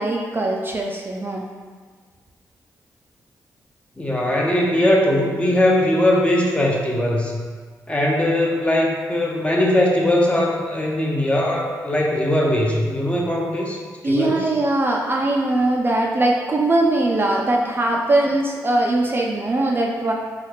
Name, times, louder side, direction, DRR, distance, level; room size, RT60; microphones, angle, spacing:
voice 1, 0.0-1.4 14.0-20.1, right 2 dB, 30° right, 0 dB, 0.4 m, -21 dB
voice 2, 4.0-7.4 7.9-13.8 14.0-14.4, left 1 dB, 15° left, -2 dB, 0.6 m, -20 dB
3.1 x 2.3 x 3.1 m, 1.6 s
cardioid pair, 55°, 7 cm